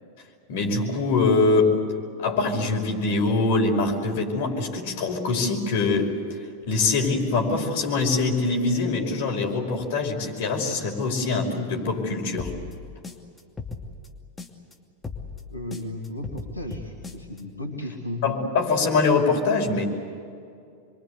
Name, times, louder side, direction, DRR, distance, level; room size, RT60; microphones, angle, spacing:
voice 1, 0.5-1.8 2.2-6.2 6.7-12.5 18.2-19.8, left 3 dB, 50° left, 0 dB, 5.5 m, -23 dB
sound 1, 12.4-14.7 15.0-17.4, left 4 dB, 15° left, 2.6 m, -37 dB
voice 2, 15.5-18.2, left 1 dB, 85° left, -1 dB, 3.1 m, -35 dB
27.5 x 24.0 x 8.3 m, 2.4 s
figure-of-eight pair, 90°, 0 cm